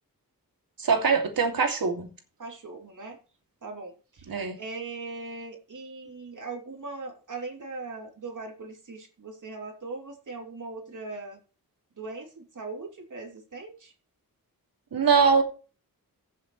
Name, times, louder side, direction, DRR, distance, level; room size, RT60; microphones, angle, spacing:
voice 1, 0.8-2.1 4.3-4.6 14.9-15.4, right 5 dB, 80° right, 2.8 m, -22 dB
voice 2, 2.4-3.2 3.6-11.4 12.0-13.9, right 3 dB, 60° right, 3.3 m, -40 dB
15.5 x 7.5 x 3.3 m
wide cardioid pair, 90°, 35 cm